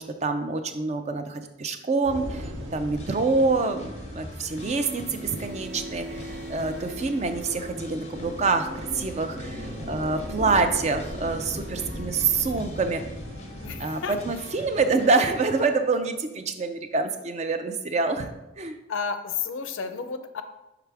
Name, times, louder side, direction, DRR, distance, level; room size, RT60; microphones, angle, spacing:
voice 1, 0.0-3.9 4.1-8.7 8.9-13.0 13.8-18.3 18.6-18.8, right 3 dB, 35° right, 8 dB, 0.4 m, -26 dB
sound 1, 2.0-14.9, equal, 85° right, 1.2 m, -39 dB
sound 2, 3.0-15.8, left 3 dB, 35° left, 0.5 m, -46 dB
sound 3, 4.5-16.1, right 1 dB, 55° right, 0.8 m, -42 dB
voice 2, 13.6-14.1 18.9-20.4, left 6 dB, 85° left, 9 dB, 0.5 m, -31 dB
5.9 x 4.8 x 3.4 m, 0.95 s
head